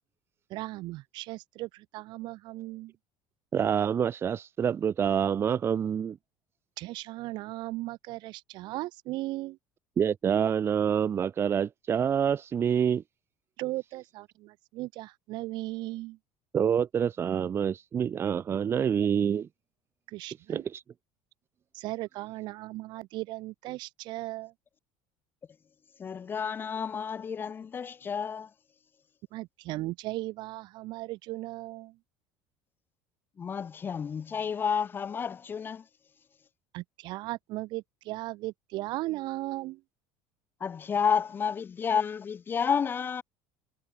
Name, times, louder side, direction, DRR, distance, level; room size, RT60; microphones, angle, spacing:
voice 1, 0.5-2.9 6.8-9.6 13.6-16.2 20.1-20.6 21.7-24.5 29.3-31.9 36.7-39.8, right 19 dB, 55° right, 7.3 m, -37 dB
voice 2, 3.5-6.2 10.0-13.0 16.5-19.5 20.5-20.8, right 8 dB, 25° right, 3.8 m, -27 dB
voice 3, 26.0-28.5 33.4-35.8 40.6-43.2, left 6 dB, 20° left, 3.0 m, -30 dB
cardioid pair, 165°, 9 cm